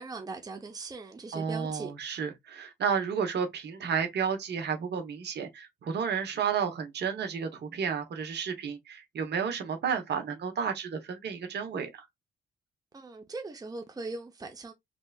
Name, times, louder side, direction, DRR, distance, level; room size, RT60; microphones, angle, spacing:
voice 1, 0.0-1.9 12.9-14.7, right 3 dB, 20° right, 0.7 m, -40 dB
voice 2, 1.3-12.1, right 6 dB, 60° right, 1.1 m, -32 dB
3.3 x 2.8 x 2.3 m
cardioid pair, 90°, 20 cm